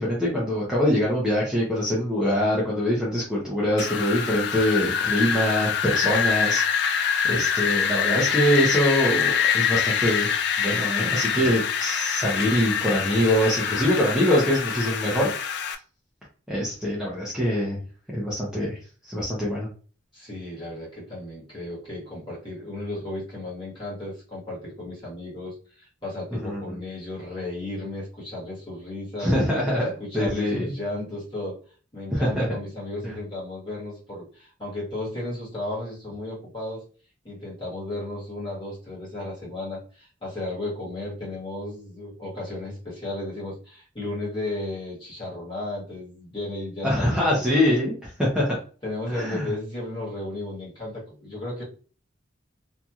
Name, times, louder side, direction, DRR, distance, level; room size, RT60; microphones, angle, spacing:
voice 1, 0.0-6.6 7.2-10.3 10.6-15.3 16.5-17.8 18.1-18.8 19.0-19.7 26.3-26.8 29.2-30.7 32.1-32.6 46.8-48.6 49.1-49.5, equal, 5° right, -6 dB, 0.7 m, -24 dB
Wind, 3.8-15.7, left 7 dB, 60° left, 0.3 m, -25 dB
voice 2, 20.1-29.3 29.8-31.6 31.9-36.8 37.2-47.4 48.8-51.6, left 2 dB, 25° left, -6 dB, 1.4 m, -34 dB
2.8 x 2.5 x 2.4 m, 0.38 s
head